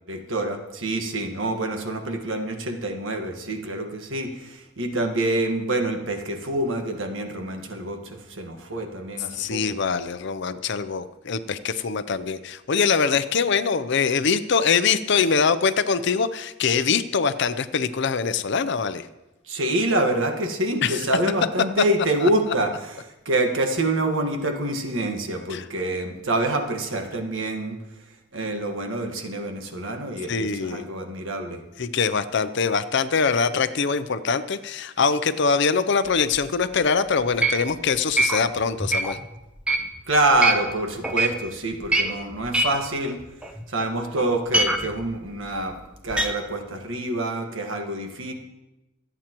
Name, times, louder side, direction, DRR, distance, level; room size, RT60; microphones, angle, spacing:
voice 1, 0.1-9.6 19.5-27.7 28.3-31.6 40.1-43.2 43.7-48.3, right 1 dB, 70° right, 3 dB, 1.6 m, -26 dB
voice 2, 9.3-19.1 20.8-21.0 25.5-25.6 30.3-30.8 31.8-39.2, left 5 dB, 60° left, 13 dB, 0.6 m, -23 dB
sound 1, 36.1-36.7 37.2-40.8 41.0-41.4 41.7-43.9 44.2-46.3, right 2 dB, 5° right, 0.9 m, -24 dB
26.0 x 8.8 x 3.0 m, 1.0 s
head